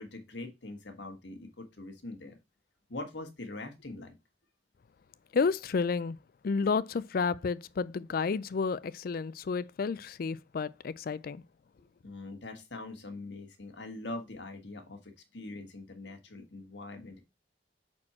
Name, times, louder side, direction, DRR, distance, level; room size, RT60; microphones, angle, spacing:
voice 1, 0.0-2.4 2.9-4.1 12.0-17.2, left 2 dB, 75° left, 1.6 m, -43 dB
voice 2, 5.3-6.2 6.4-11.4, left 5 dB, 55° left, 0.4 m, -31 dB
6.0 x 4.4 x 4.3 m
head